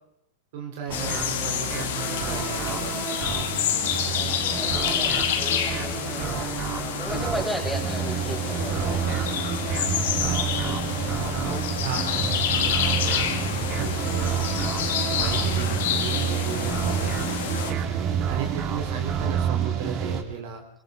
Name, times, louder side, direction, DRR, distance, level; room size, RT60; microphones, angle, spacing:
voice 1, 0.5-3.6 10.2-11.0 11.5-20.6, right 6 dB, 50° right, 2 dB, 3.7 m, -36 dB
sound 1, 0.9-17.7, left 9 dB, 55° left, 2.5 m, -28 dB
sound 2, 0.9-20.2, right 7 dB, 35° right, 3.7 m, -28 dB
voice 2, 4.1-9.4, equal, ahead, 0 dB, 6.6 m, -36 dB
27.5 x 25.5 x 3.9 m, 0.77 s
figure-of-eight pair, 90°, 0 cm